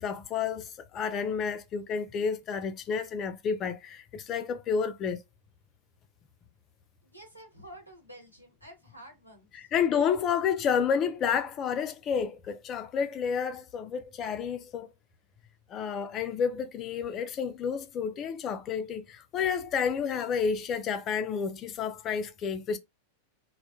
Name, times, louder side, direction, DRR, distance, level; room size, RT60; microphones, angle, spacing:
voice 1, 0.0-5.2 9.5-14.9 15.7-22.8, left 6 dB, 30° left, 0.4 m, -30 dB
voice 2, 7.0-9.7, right 1 dB, 90° right, 1.0 m, -50 dB
2.1 x 2.1 x 2.8 m
figure-of-eight pair, 90°, 0 cm